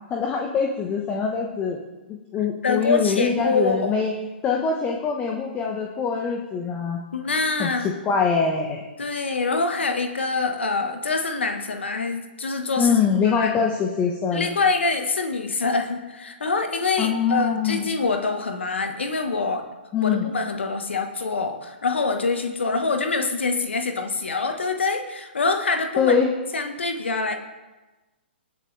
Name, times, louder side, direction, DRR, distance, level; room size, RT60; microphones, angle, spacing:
voice 1, 0.1-1.8 2.1-4.1 4.4-7.0 7.6-8.8 12.8-14.5 17.0-17.9 19.9-20.3 26.0-26.3, left 6 dB, 20° left, 1 dB, 1.2 m, -23 dB
voice 2, 2.6-3.9 7.1-7.9 9.0-12.9 13.3-13.5 14.3-19.6 20.0-26.1 26.5-27.4, left 4 dB, 80° left, 5 dB, 1.4 m, -25 dB
20.5 x 7.8 x 3.4 m, 1.1 s
hypercardioid pair, 130°, 6 cm